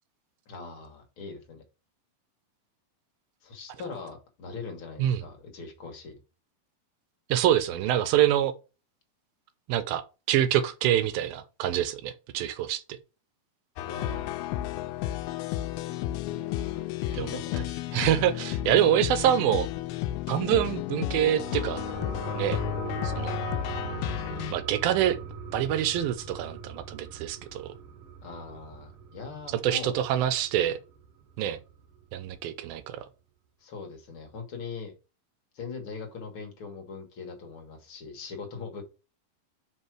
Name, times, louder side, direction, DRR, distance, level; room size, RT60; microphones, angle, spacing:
voice 1, 0.4-1.6 3.4-6.2 13.8-14.4 16.3-17.7 28.2-30.0 33.6-34.9 35.5-38.8, left 4 dB, 50° left, 1.7 m, -41 dB
voice 2, 7.3-8.5 9.7-10.0 10.3-12.8 17.1-17.3 17.9-19.7 20.3-21.8 22.4-22.6 23.0-23.4 24.5-25.2 25.5-27.7 29.6-30.8 31.4-31.6 32.1-33.1, right 11 dB, 85° right, 2.4 m, -25 dB
sound 1, 13.8-24.5, left 14 dB, 85° left, 2.4 m, -33 dB
sound 2, 21.2-30.3 30.7-30.8, right 3 dB, 50° right, 1.9 m, -38 dB
5.6 x 5.4 x 4.6 m
omnidirectional pair, 4.4 m